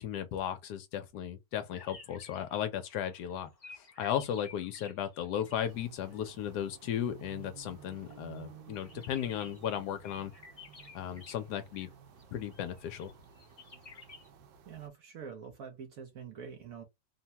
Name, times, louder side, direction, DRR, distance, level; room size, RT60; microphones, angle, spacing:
voice 1, 0.0-10.3 10.9-11.9 12.3-13.1, left 10 dB, 75° left, 1.1 m, -36 dB
sound 1, 1.7-5.8 6.1-11.4 11.7-12.2 12.5-14.3, left 3 dB, 30° left, 0.7 m, -55 dB
sound 2, 5.7-14.9, right 7 dB, 85° right, 1.4 m, -54 dB
voice 2, 14.6-16.8, right 6 dB, 65° right, 0.9 m, -45 dB
3.3 x 2.2 x 2.8 m
omnidirectional pair, 2.0 m